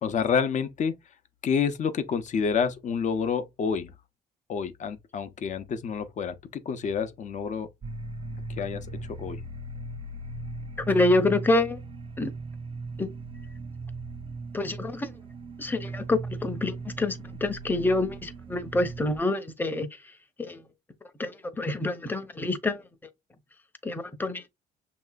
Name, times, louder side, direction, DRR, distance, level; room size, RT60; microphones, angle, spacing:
voice 1, 0.0-0.9 1.4-3.9 4.5-7.7 8.6-9.4, left 6 dB, 45° left, 0.8 m, -28 dB
sound 1, 7.8-19.2, right 3 dB, 30° right, 0.6 m, -38 dB
voice 2, 10.9-11.8 12.2-12.3 13.0-13.1 14.5-15.1 15.6-19.9 20.4-20.6 21.2-22.8 23.8-24.5, left 2 dB, 10° left, 0.9 m, -27 dB
6.5 x 2.9 x 2.3 m
cardioid pair, 105°, 18 cm